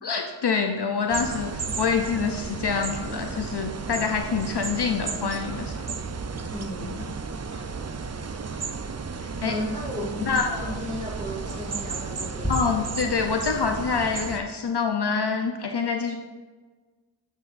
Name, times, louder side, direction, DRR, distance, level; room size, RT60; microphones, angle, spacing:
voice 1, 0.0-5.7 9.4-9.6 10.3-10.8 12.5-16.2, left 5 dB, 55° left, 4 dB, 0.6 m, -26 dB
sound 1, 1.1-14.4, right 5 dB, 35° right, 0.5 m, -33 dB
Tick-tock, 4.2-12.5, right 1 dB, 10° left, 2.4 m, -46 dB
voice 2, 6.5-7.1 9.4-10.3 10.6-12.7, left 1 dB, 15° right, -3 dB, 2.2 m, -34 dB
9.3 x 7.4 x 2.5 m, 1.4 s
wide cardioid pair, 55°, 48 cm